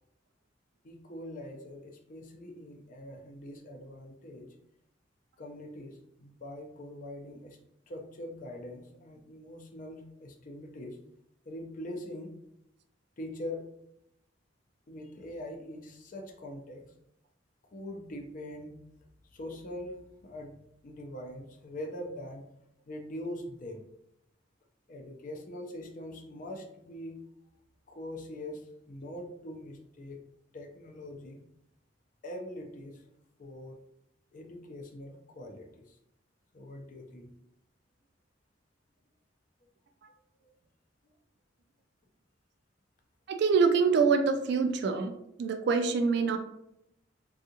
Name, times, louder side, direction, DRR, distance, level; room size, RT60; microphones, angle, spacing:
voice 1, 0.8-4.5 5.4-7.6 7.9-11.0 11.5-12.3 13.2-13.6 14.9-16.8 17.7-18.7 19.3-20.6 20.8-22.5 22.9-23.8 24.9-27.2 27.9-30.2 30.5-31.4 32.2-33.0 33.4-33.8 34.3-36.0 36.5-37.3, left 1 dB, 45° left, 3 dB, 0.5 m, -43 dB
voice 2, 43.3-45.1 45.4-46.4, right 5 dB, 65° right, 6 dB, 0.3 m, -25 dB
3.6 x 2.3 x 2.7 m, 0.80 s
head